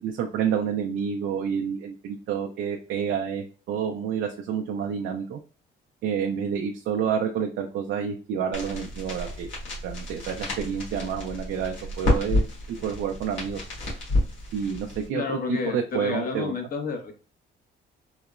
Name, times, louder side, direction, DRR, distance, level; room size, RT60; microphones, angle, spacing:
voice 1, 0.0-5.4 6.0-9.5 9.8-13.6 14.5-16.5, right 7 dB, 75° right, 1 dB, 0.5 m, -29 dB
sound 1, 8.5-15.1, left 2 dB, 70° left, 1.5 m, -30 dB
voice 2, 15.1-17.1, left 4 dB, 45° left, 4 dB, 0.9 m, -30 dB
3.8 x 2.1 x 2.4 m, 0.37 s
cardioid pair, 90°, 20 cm